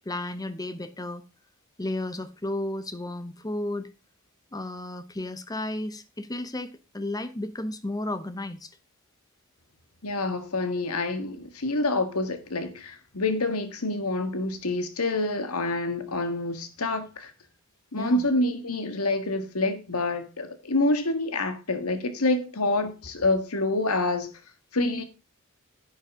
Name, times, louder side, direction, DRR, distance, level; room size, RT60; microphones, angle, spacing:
voice 1, 0.1-1.2 1.8-3.9 4.5-8.7 17.9-18.3, left 1 dB, 15° left, 0.8 m, -33 dB
voice 2, 10.0-17.3 17.9-24.3 24.7-25.0, left 2 dB, 85° left, 1.7 m, -27 dB
10.5 x 8.3 x 3.7 m
head